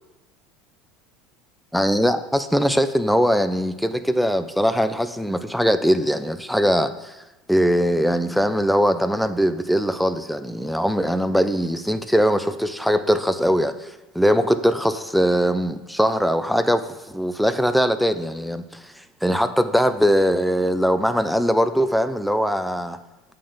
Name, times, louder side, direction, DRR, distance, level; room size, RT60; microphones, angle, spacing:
voice 1, 1.7-7.2 7.5-18.6 19.2-23.0, equal, ahead, 10 dB, 0.5 m, -21 dB
8.6 x 3.8 x 5.0 m, 1.1 s
hypercardioid pair, 90°, 0 cm